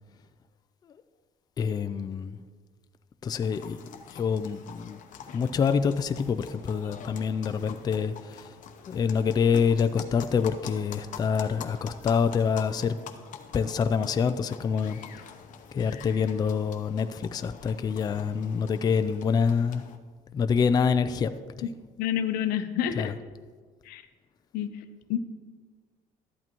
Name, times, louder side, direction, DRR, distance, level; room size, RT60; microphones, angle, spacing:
voice 1, 1.6-2.4 3.2-5.0 5.3-8.5 8.9-13.0 13.5-15.0 15.7-19.8 20.3-21.3 21.6-21.7 23.0-23.1, left 6 dB, 25° left, 10 dB, 0.3 m, -26 dB
sound 1, 3.4-20.0, left 7 dB, 60° left, 0.8 m, -46 dB
voice 2, 22.0-23.1 23.8-24.0 24.5-24.8 25.1-25.2, left 10 dB, 90° left, 9 dB, 0.7 m, -28 dB
12.5 x 8.5 x 3.0 m, 1.5 s
cardioid pair, 130°, 15 cm